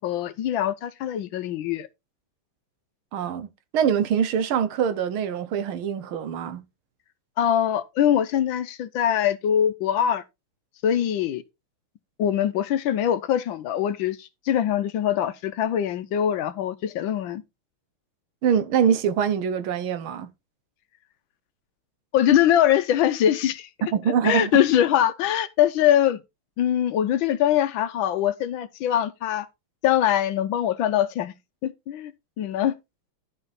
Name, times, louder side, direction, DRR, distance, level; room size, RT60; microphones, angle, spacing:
voice 1, 0.0-1.9 7.4-10.2 10.8-11.4 12.2-17.4 22.1-23.7 24.2-26.2 26.6-29.5 29.8-31.3 31.6-32.1 32.4-32.7, left 10 dB, 70° left, 1.3 m, -23 dB
voice 2, 3.1-3.5 3.7-6.6 18.4-20.3 23.9-24.5, right 8 dB, 75° right, 1.7 m, -24 dB
11.5 x 5.5 x 4.0 m
omnidirectional pair, 2.4 m